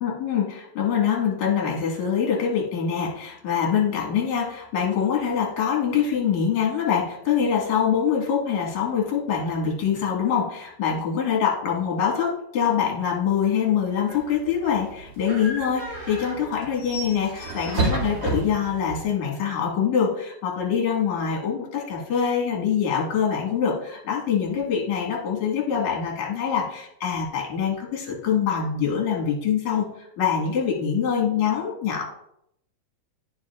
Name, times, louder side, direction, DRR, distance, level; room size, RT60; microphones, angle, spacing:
voice 1, 0.0-29.9 30.2-32.0, left 7 dB, 60° left, -1 dB, 2.9 m, -24 dB
sound 1, 14.1-19.1, right 3 dB, 35° right, 2.4 m, -31 dB
13.0 x 4.8 x 2.4 m, 0.76 s
omnidirectional pair, 3.9 m